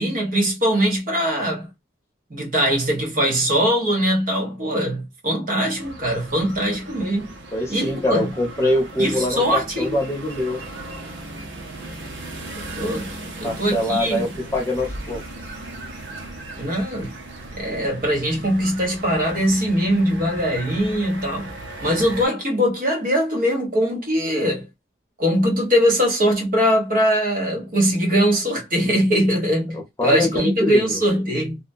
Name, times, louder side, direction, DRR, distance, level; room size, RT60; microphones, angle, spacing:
voice 1, 0.0-1.7 2.3-7.3 7.7-8.3 9.0-10.0 12.7-13.1 13.4-14.2 16.6-17.1 17.5-21.5 21.8-24.7 25.2-31.6, equal, 45° right, 0.9 m, -21 dB
sound 1, 5.8-22.3, right 1 dB, 75° right, 0.7 m, -37 dB
voice 2, 7.5-10.6 13.4-15.2 29.7-31.0, left 1 dB, 15° left, 0.8 m, -24 dB
2.8 x 2.1 x 2.5 m
head